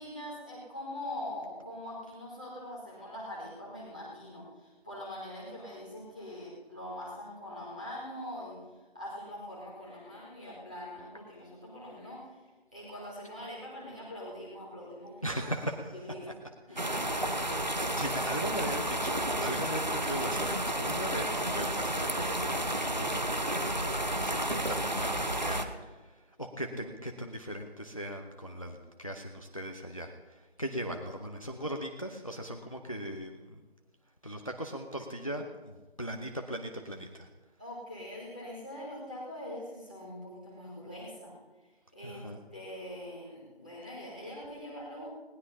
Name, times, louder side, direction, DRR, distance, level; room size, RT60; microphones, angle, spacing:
voice 1, 0.0-8.6 8.9-12.4 12.7-15.3 15.9-16.2 16.7-17.2 37.6-41.4 41.9-45.1, left 1 dB, 10° right, -10 dB, 1.9 m, -43 dB
voice 2, 15.2-15.9 18.0-33.6 34.2-37.3 42.0-42.4, equal, 30° left, 4 dB, 0.8 m, -39 dB
sound 1, 16.8-25.6, right 1 dB, 45° right, 1.1 m, -31 dB
20.0 x 19.0 x 2.8 m, 1.3 s
figure-of-eight pair, 175°, 32 cm